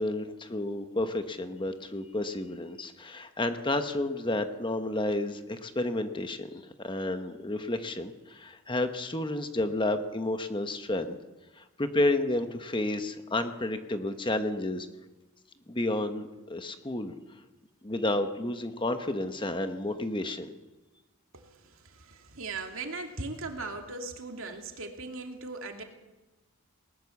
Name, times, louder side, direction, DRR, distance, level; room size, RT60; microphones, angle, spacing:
voice 1, 0.0-11.2 11.6-14.9 15.7-17.1 17.8-20.6, left 2 dB, 20° left, 8 dB, 1.1 m, -31 dB
voice 2, 21.3-25.8, right 3 dB, 60° right, 3 dB, 2.7 m, -39 dB
20.0 x 19.5 x 7.2 m, 1.1 s
head